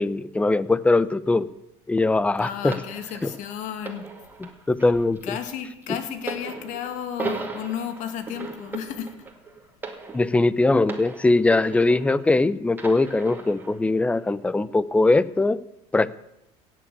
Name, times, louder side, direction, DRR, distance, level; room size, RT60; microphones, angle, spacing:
voice 1, 0.0-1.5 1.9-2.7 3.2-3.3 4.4-5.2 10.1-15.6 15.9-16.2, left 2 dB, 10° left, 18 dB, 0.6 m, -21 dB
voice 2, 2.4-4.1 5.2-9.1, left 9 dB, 60° left, 8 dB, 2.1 m, -33 dB
sound 1, 2.7-12.4 12.7-13.8 14.6-14.7, right 4 dB, 15° right, 2.3 m, -37 dB
17.0 x 7.6 x 8.6 m, 0.86 s
supercardioid pair, 115°, 14 cm